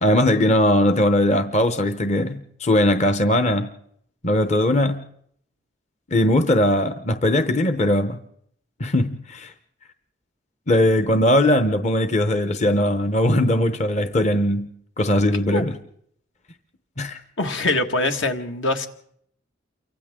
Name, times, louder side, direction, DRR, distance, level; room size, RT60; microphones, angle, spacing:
voice 1, 0.0-3.7 4.2-5.0 6.1-8.2 8.8-9.5 10.7-14.7 15.0-15.8 17.0-17.2, left 1 dB, 35° left, 9 dB, 0.8 m, -20 dB
voice 2, 17.4-18.9, left 2 dB, 75° left, 5 dB, 1.8 m, -23 dB
29.0 x 24.5 x 3.7 m, 0.69 s
head